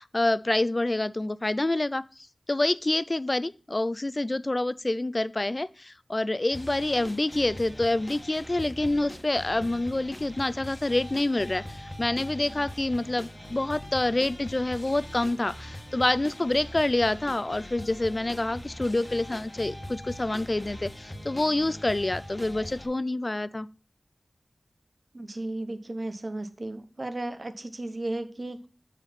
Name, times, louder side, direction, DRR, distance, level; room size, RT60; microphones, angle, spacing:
voice 1, 0.0-2.0 2.5-23.7, left 2 dB, 40° left, 0.4 m, -27 dB
sound 1, 6.5-22.9, left 1 dB, 25° left, 1.4 m, -42 dB
voice 2, 25.1-28.6, right 2 dB, 50° right, 1.0 m, -34 dB
6.8 x 4.2 x 5.9 m
wide cardioid pair, 45°, 0 cm